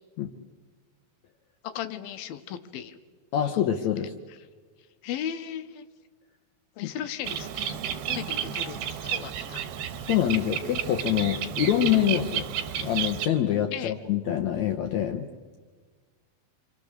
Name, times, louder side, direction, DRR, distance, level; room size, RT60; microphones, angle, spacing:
voice 1, 1.6-3.0 3.4-3.6 5.0-5.9 6.8-7.8 8.1-8.8 9.0-9.6 13.7-13.9, left 9 dB, 85° left, 10 dB, 2.8 m, -36 dB
voice 2, 3.3-4.1 6.8-6.9 10.1-12.5 12.8-15.3, left 10 dB, 70° left, 4 dB, 1.8 m, -25 dB
Bird, 7.3-13.3, right 9 dB, 90° right, 2.9 m, -32 dB
28.0 x 23.5 x 6.6 m, 1.5 s
omnidirectional pair, 4.3 m